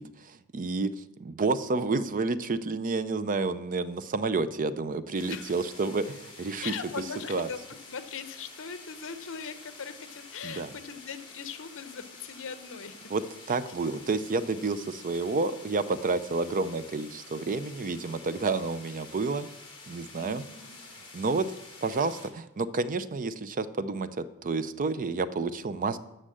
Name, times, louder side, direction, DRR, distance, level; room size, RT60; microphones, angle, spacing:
voice 1, 0.0-7.0 7.3-7.5 10.4-10.7 13.1-13.2 13.5-19.5 19.9-20.4 21.1-21.4 21.8-26.0, right 3 dB, 40° right, 13 dB, 0.5 m, -30 dB
sound 1, 5.1-22.3, left 3 dB, 25° left, 3.0 m, -49 dB
voice 2, 6.6-7.6 7.9-13.1 13.5-13.6 20.2-20.7 21.4-21.6, left 6 dB, 60° left, 10 dB, 0.9 m, -40 dB
9.9 x 6.6 x 7.6 m, 0.92 s
head